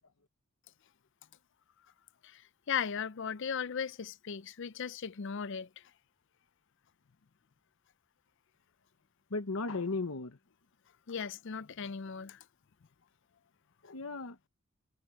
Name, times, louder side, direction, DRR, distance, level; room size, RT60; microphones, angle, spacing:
voice 1, 2.7-5.8 11.1-12.4, left 7 dB, 55° left, 0.5 m, -37 dB
voice 2, 9.3-10.4 13.8-14.5, left 3 dB, 70° left, 1.1 m, -36 dB
head